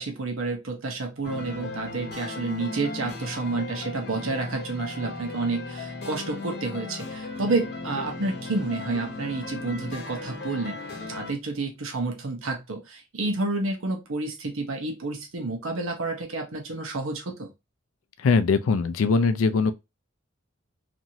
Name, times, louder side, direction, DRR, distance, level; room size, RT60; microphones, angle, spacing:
voice 1, 0.0-10.8 11.1-17.5, right 3 dB, 80° right, 0.8 m, -30 dB
sound 1, 1.2-11.3, left 3 dB, 55° left, 0.8 m, -36 dB
voice 2, 18.2-19.7, left 4 dB, 90° left, 0.4 m, -21 dB
3.0 x 2.6 x 2.6 m
head